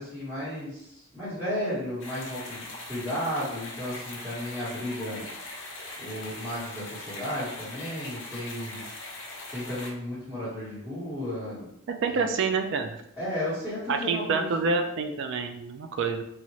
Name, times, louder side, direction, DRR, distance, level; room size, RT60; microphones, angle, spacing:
voice 1, 0.0-5.2 6.0-8.8 9.5-11.7 12.1-12.3 13.2-14.7, left 1 dB, 5° right, -16 dB, 1.2 m, -34 dB
sound 1, 2.0-9.9, left 2 dB, 55° left, 0.6 m, -41 dB
voice 2, 12.0-12.9 13.9-16.2, right 4 dB, 55° right, 7 dB, 0.3 m, -27 dB
2.7 x 2.4 x 3.0 m, 0.77 s
head